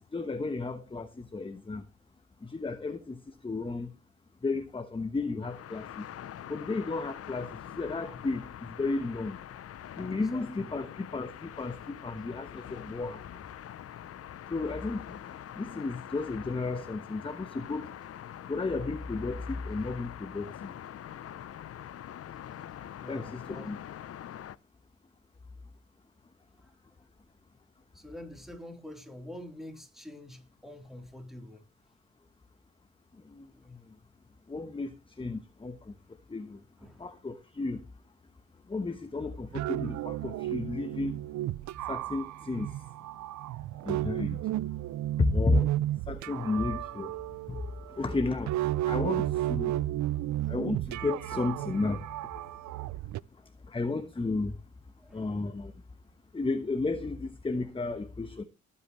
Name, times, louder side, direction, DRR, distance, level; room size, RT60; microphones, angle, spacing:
voice 1, 0.0-1.8 2.4-3.2 3.4-3.9 4.4-6.0 6.5-8.4 8.8-9.4 10.0-13.2 14.5-15.0 15.5-17.8 18.5-20.7 23.1-23.8 33.4-33.5 34.5-34.9 35.2-35.7 36.3-36.6 37.0-37.8 38.7-41.2 41.9-42.7 43.8-44.4 45.2-45.7 46.1-47.1 48.0-48.5 48.9-49.8 50.5-52.0 53.7-54.5 55.1-55.7 56.3-58.4, left 3 dB, 15° left, 1.2 m, -32 dB
sound 1, 5.4-24.6, left 10 dB, 50° left, 0.8 m, -44 dB
voice 2, 9.8-10.8 23.0-23.7 26.5-27.1 27.9-31.7 33.5-33.6 36.8-37.1 50.3-50.6 52.9-53.5 55.0-55.4, left 1 dB, ahead, 3.8 m, -48 dB
sound 2, 39.3-53.2, right 14 dB, 70° right, 0.5 m, -33 dB
19.5 x 8.6 x 3.2 m
cardioid pair, 90°, 30 cm